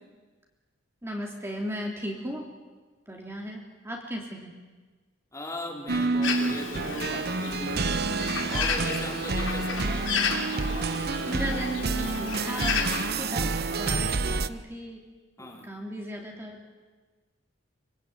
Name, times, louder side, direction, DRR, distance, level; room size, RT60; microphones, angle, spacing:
voice 1, 1.0-2.5 3.1-4.5 10.9-15.0 15.4-16.7, right 1 dB, 15° right, -1 dB, 3.3 m, -36 dB
voice 2, 5.3-8.1 8.5-9.9 15.4-15.7, left 1 dB, 15° left, 0 dB, 4.1 m, -38 dB
sound 1, 5.9-14.5, right 3 dB, 55° right, 0.8 m, -29 dB
Bird, 6.2-13.1, left 5 dB, 85° left, 4.0 m, -32 dB
sound 2, 8.3-14.2, right 2 dB, 40° right, 4.1 m, -42 dB
24.5 x 24.0 x 9.2 m, 1.3 s
head